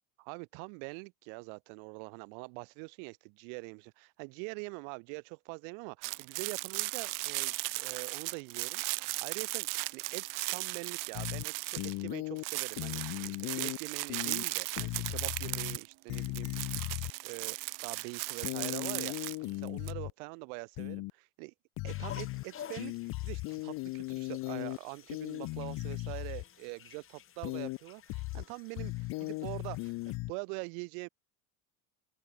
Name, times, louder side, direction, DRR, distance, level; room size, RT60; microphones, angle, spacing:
voice 1, 0.2-16.9 17.2-21.5 21.8-31.1, right 40 dB or more, 90° right, 2.3 m, -44 dB
sound 1, 6.0-12.1 12.4-19.9, right 24 dB, 55° right, 0.6 m, -37 dB
sound 2, 11.1-11.4 11.8-12.4 12.8-13.8 14.1-14.4 14.8-15.8 16.1-17.1 18.4-20.1 20.8-21.1 21.8-22.4 22.8-24.8 25.1-26.4 27.4-27.8 28.1-28.4 28.8-30.3, left 23 dB, 50° left, 0.6 m, -37 dB
sound 3, 21.9-30.2, left 10 dB, 30° left, 3.4 m, -52 dB
open air
cardioid pair, 155°, 40 cm